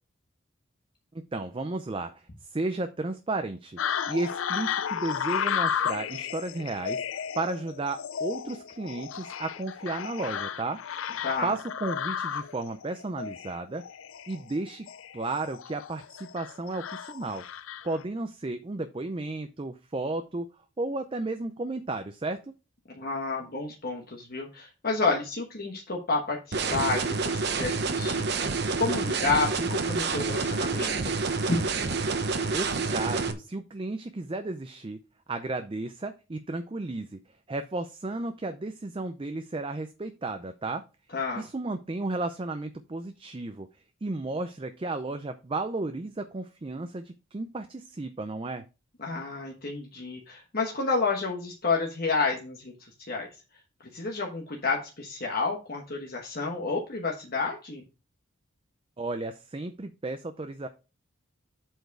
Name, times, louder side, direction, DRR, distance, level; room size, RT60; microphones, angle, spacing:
voice 1, 1.1-2.2 2.5-3.8 4.1-10.8 11.4-13.8 14.3-14.9 15.1-17.4 17.8-20.5 20.8-22.4 32.5-35.0 35.3-37.2 37.5-40.8 41.4-43.7 44.0-48.6 59.0-60.7, right 2 dB, 25° right, 8 dB, 0.4 m, -33 dB
sound 1, 3.8-18.0, left 8 dB, 75° left, 0.5 m, -33 dB
voice 2, 23.0-28.5 28.8-31.1 31.5-31.6 41.1-41.4 49.0-53.3 53.9-57.8, left 3 dB, 50° left, 0 dB, 1.2 m, -30 dB
sound 2, 26.5-33.3, right 4 dB, 55° right, 0.9 m, -28 dB
8.0 x 4.5 x 4.6 m, 0.31 s
head